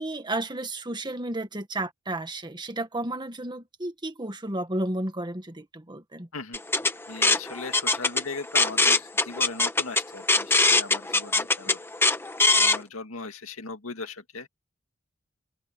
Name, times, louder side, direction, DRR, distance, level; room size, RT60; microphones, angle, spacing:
voice 1, 0.0-6.3, right 1 dB, 20° right, 1.8 m, -32 dB
sound 1, 6.5-12.8, left 3 dB, 10° left, 1.3 m, -22 dB
voice 2, 7.1-11.8 12.5-14.5, left 3 dB, 85° left, 2.1 m, -38 dB
head